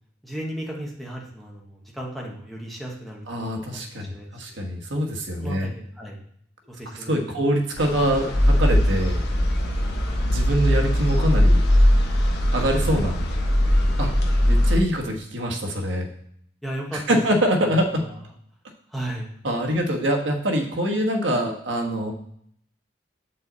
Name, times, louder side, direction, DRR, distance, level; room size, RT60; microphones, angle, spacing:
voice 1, 0.2-4.4 5.4-6.2 6.7-7.4 16.6-17.2 17.6-18.2 18.9-19.3, right 1 dB, ahead, -2 dB, 1.4 m, -35 dB
voice 2, 3.3-5.7 7.1-9.2 10.2-11.6 12.5-13.2 14.0-14.1 14.5-16.1 17.1-17.9 19.4-22.1, equal, 75° right, 1 dB, 1.4 m, -24 dB
sound 1, 7.8-14.8, equal, 60° left, 1.2 m, -20 dB
8.1 x 5.5 x 4.1 m, 0.68 s
head